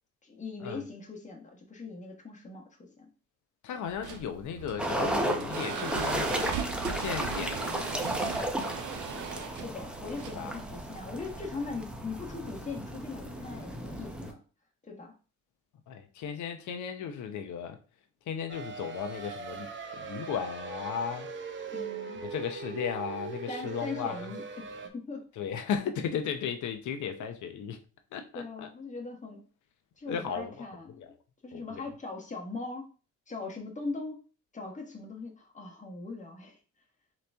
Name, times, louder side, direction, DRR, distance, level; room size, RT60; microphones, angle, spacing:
voice 1, 0.2-3.1 9.5-14.4 14.8-15.1 21.7-22.2 23.5-25.3 28.3-29.4 30.0-31.0 31.4-32.9 33.3-34.2 34.5-36.6, left 3 dB, 25° left, 1.3 m, -40 dB
voice 2, 3.6-6.5 6.8-8.5 10.3-10.5 15.9-17.8 18.3-21.3 22.2-24.2 25.4-27.8 28.1-28.7 30.1-30.5 31.0-31.1 31.5-31.8, left 7 dB, 75° left, 0.8 m, -36 dB
sound 1, 3.9-11.8, right 8 dB, 75° right, 0.8 m, -39 dB
sound 2, 4.8-14.3, right 1 dB, 5° right, 0.7 m, -34 dB
sound 3, 18.5-24.9, right 5 dB, 40° right, 0.7 m, -40 dB
3.9 x 3.0 x 3.4 m
cardioid pair, 90°, 30 cm